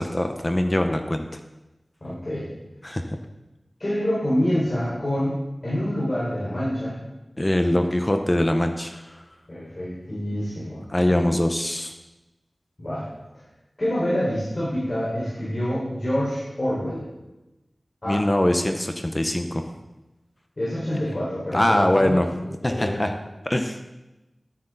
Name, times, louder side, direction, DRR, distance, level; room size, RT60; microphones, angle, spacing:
voice 1, 0.0-1.4 2.8-3.0 7.4-9.1 10.9-11.9 18.1-19.7 21.5-22.3 22.6-23.1 23.4-24.0, left 1 dB, 30° left, 6 dB, 0.8 m, -23 dB
voice 2, 2.0-2.5 3.8-7.0 9.5-11.2 12.8-13.1 13.8-17.0 18.0-18.2 20.6-22.2 22.6-23.0, equal, 50° left, -8 dB, 4.7 m, -26 dB
12.5 x 9.7 x 4.0 m, 1.0 s
wide cardioid pair, 50°, 0 cm